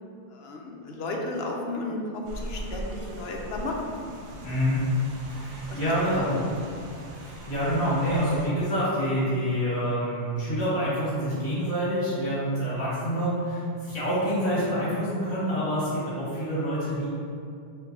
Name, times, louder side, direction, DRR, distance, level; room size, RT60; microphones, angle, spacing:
voice 1, 0.3-4.0 5.7-5.8 6.1-6.4, left 2 dB, 70° left, 1 dB, 0.8 m, -33 dB
Rain, 2.2-8.5, equal, 80° right, 0.9 m, -40 dB
voice 2, 4.4-4.8 5.3-6.3 7.1-17.1, equal, 35° left, -11 dB, 1.5 m, -27 dB
5.9 x 2.6 x 2.6 m, 2.4 s
omnidirectional pair, 1.1 m